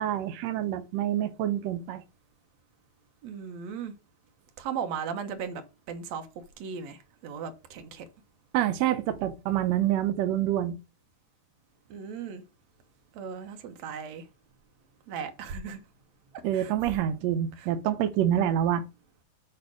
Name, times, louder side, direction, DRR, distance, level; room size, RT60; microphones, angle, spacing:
voice 1, 0.0-2.0 8.5-10.8 16.4-18.8, right 11 dB, 85° right, 1.5 m, -27 dB
voice 2, 3.2-3.9 4.6-5.6 5.9-6.3 6.6-8.1 11.9-12.4 13.1-14.2 15.1-15.8 16.5-16.7 17.6-17.7, right 7 dB, 65° right, 1.9 m, -37 dB
8.3 x 3.6 x 6.3 m
omnidirectional pair, 4.1 m